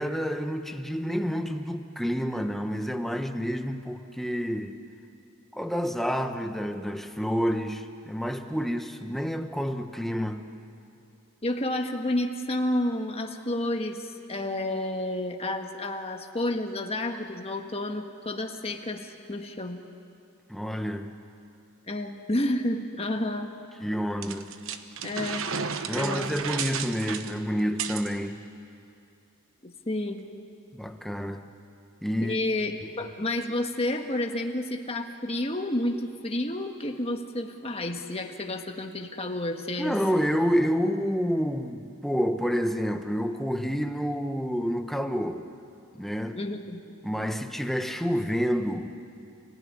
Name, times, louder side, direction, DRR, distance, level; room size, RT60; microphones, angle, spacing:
voice 1, 0.0-4.8 5.5-10.5 20.5-21.1 23.8-24.5 25.9-28.4 30.7-31.5 32.0-32.4 32.8-32.9 39.8-45.5 45.9-46.4 47.0-48.9, equal, ahead, 6 dB, 1.0 m, -29 dB
voice 2, 11.4-19.8 21.9-23.5 25.0-25.4 25.9-26.3 29.6-30.2 32.2-40.0 46.3-46.8, left 1 dB, 25° left, 4 dB, 1.5 m, -30 dB
sound 1, 24.2-28.1, right 6 dB, 60° right, 1.1 m, -33 dB
30.0 x 16.5 x 9.8 m, 2.5 s
head